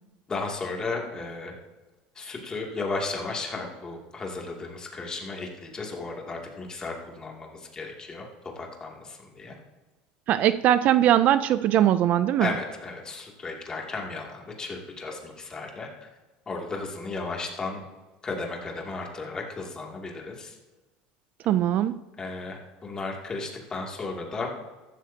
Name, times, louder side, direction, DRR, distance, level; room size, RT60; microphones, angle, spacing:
voice 1, 0.3-1.5 2.1-8.3 8.6-9.6 12.4-16.1 16.5-17.8 18.2-20.6 22.2-24.5, left 3 dB, 20° left, 0 dB, 2.4 m, -34 dB
voice 2, 10.3-12.5 21.5-22.0, right 11 dB, 45° right, 14 dB, 0.4 m, -21 dB
15.0 x 12.5 x 2.8 m, 1.2 s
supercardioid pair, 135°, 4 cm